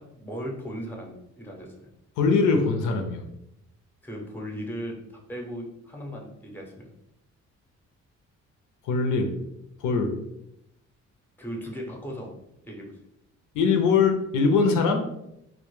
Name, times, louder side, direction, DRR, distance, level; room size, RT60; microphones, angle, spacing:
voice 1, 0.0-1.9 4.0-5.0 5.3-6.9 11.4-12.3 12.6-13.0, equal, 5° left, 0 dB, 0.6 m, -37 dB
voice 2, 2.2-3.2 8.8-9.3 9.8-10.1 13.5-15.0, left 4 dB, 85° left, 4 dB, 0.5 m, -22 dB
2.1 x 2.0 x 3.0 m, 0.82 s
cardioid pair, 90°, 30 cm